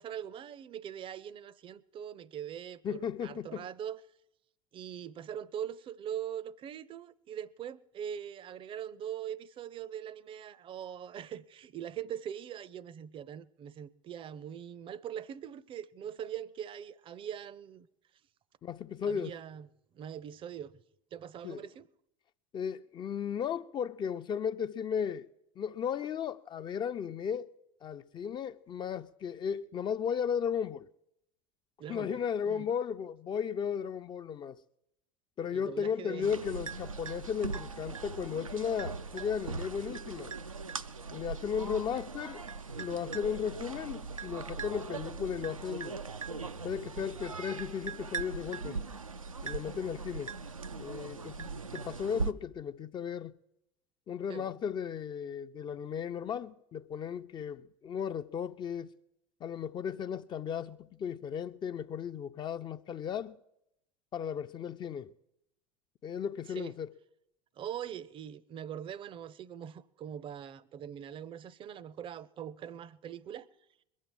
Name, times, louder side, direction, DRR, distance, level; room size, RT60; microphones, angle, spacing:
voice 1, 0.0-4.0 4.7-17.9 19.1-19.7 19.9-20.7 21.1-21.9 31.8-32.2 32.5-32.7 35.5-36.3 54.3-54.5 66.6-66.7 67.6-73.5, right 9 dB, 30° right, 0.6 m, -42 dB
voice 2, 2.8-3.6 18.6-19.3 21.4-21.7 22.5-25.3 25.6-27.5 27.8-30.9 31.9-34.6 35.4-40.4 41.1-42.4 42.8-46.0 46.6-48.8 49.4-50.3 50.8-53.3 54.1-58.9 59.4-63.4 64.1-65.1 66.0-66.9, left 7 dB, 30° left, 0.5 m, -35 dB
sound 1, 36.2-52.3, right 4 dB, 90° right, 0.5 m, -40 dB
21.5 x 7.4 x 7.6 m
figure-of-eight pair, 75°, 17 cm